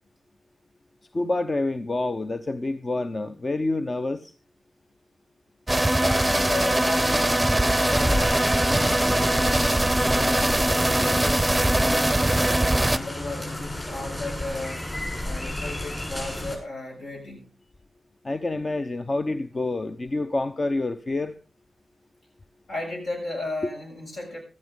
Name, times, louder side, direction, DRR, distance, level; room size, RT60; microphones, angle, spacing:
voice 1, 1.1-4.3 18.2-21.3, left 2 dB, 40° left, 0.8 m, -27 dB
sound 1, 5.7-13.0, right 1 dB, 10° right, 0.7 m, -21 dB
voice 2, 6.0-8.4 8.7-9.7 9.9-12.3 12.7-14.8 15.2-17.5 22.7-24.4, left 2 dB, 75° left, 6.6 m, -35 dB
sound 2, 7.9-16.6, left 1 dB, 25° left, 7.5 m, -32 dB
14.5 x 13.0 x 3.7 m
supercardioid pair, 40°, 0 cm